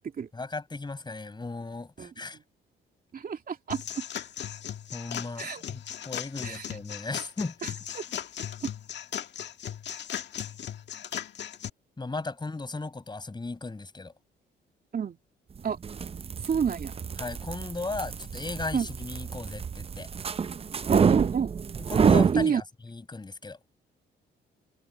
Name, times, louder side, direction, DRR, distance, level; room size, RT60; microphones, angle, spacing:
voice 1, 0.3-2.4 4.9-7.6 12.0-14.1 17.2-20.1 21.9-23.6, left 3 dB, 20° left, 6.2 m, -36 dB
voice 2, 3.1-4.0 5.4-5.6 6.4-6.7 7.6-8.0 14.9-15.2 15.6-15.8 16.4-16.9 18.7-18.9 20.9-21.5 22.3-22.6, right 7 dB, 45° right, 2.6 m, -29 dB
sound 1, 3.7-11.7, left 9 dB, 60° left, 1.8 m, -37 dB
sound 2, 15.7-22.4, right 6 dB, 30° right, 0.5 m, -27 dB
cardioid pair, 90°, 20 cm